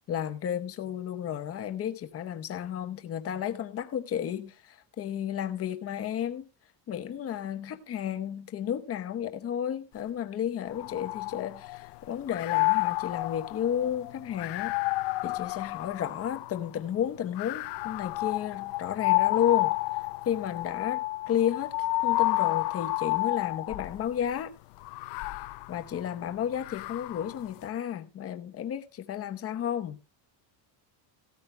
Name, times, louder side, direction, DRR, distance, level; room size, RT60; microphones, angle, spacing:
voice 1, 0.1-6.5 6.9-14.8 15.2-19.8 20.2-21.8 22.0-24.5 25.7-30.0, left 9 dB, 30° left, 1.0 m, -32 dB
sound 1, 10.7-11.9 12.3-16.7 17.4-24.0 24.8-27.4, left 21 dB, 65° left, 0.6 m, -30 dB
17.0 x 13.0 x 2.2 m
cardioid pair, 180°, 45 cm